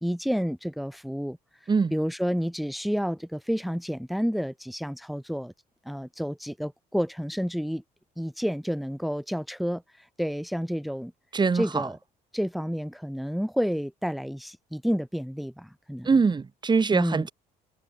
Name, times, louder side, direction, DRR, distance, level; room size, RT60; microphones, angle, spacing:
voice 1, 0.0-5.5 5.8-7.8 8.2-11.1 11.5-12.0 12.3-16.1 16.9-17.3, equal, ahead, 2.5 m, -30 dB
voice 2, 11.3-11.9 16.0-17.3, right 5 dB, 25° right, 3.0 m, -23 dB
cardioid pair, 110°, 17 cm